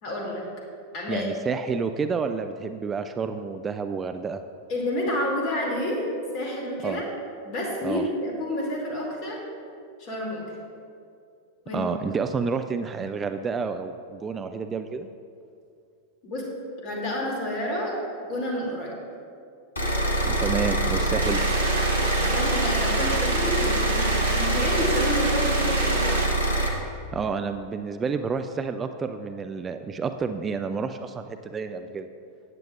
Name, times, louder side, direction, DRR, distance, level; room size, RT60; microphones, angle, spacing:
voice 1, 0.0-0.4 0.9-1.3 4.7-6.0 6.3-7.0 7.4-9.4 10.0-10.5 11.6-11.8 16.2-16.5 16.8-18.9 22.2-26.3, left 1 dB, 40° left, -1 dB, 2.5 m, -29 dB
voice 2, 1.1-4.4 6.8-7.0 7.8-8.1 11.7-15.1 20.3-21.4 27.1-32.1, right 5 dB, 20° right, 9 dB, 0.3 m, -29 dB
sound 1, 19.8-26.7, right 1 dB, 75° left, 1.2 m, -24 dB
sound 2, 21.2-26.3, right 4 dB, 55° right, 1.0 m, -31 dB
14.5 x 9.1 x 2.4 m, 2.4 s
figure-of-eight pair, 90°, 0 cm